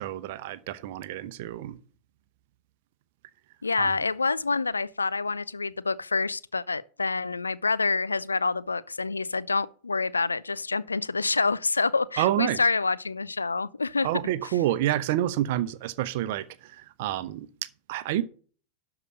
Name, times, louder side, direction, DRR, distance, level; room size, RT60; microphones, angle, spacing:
voice 1, 0.0-1.8 3.8-3.9 12.2-12.6 14.0-17.5 17.9-18.2, right 13 dB, 50° right, 0.8 m, -28 dB
voice 2, 3.6-14.1 14.4-14.5, left 4 dB, 80° left, 0.4 m, -27 dB
12.0 x 4.9 x 6.5 m
figure-of-eight pair, 90°, 0 cm